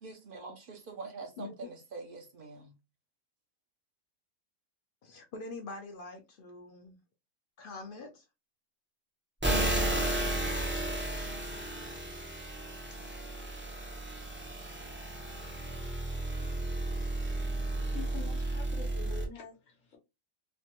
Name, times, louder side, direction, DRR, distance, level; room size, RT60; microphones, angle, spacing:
voice 1, 0.0-2.7, right 4 dB, 50° right, 0.7 m, -45 dB
voice 2, 5.0-7.0 7.6-8.2, left 3 dB, 60° left, 0.6 m, -44 dB
sound 1, 9.4-19.3, right 1 dB, 15° right, 0.4 m, -33 dB
voice 3, 17.7-20.0, left 8 dB, 75° left, 1.2 m, -46 dB
3.2 x 2.2 x 2.8 m
omnidirectional pair, 1.4 m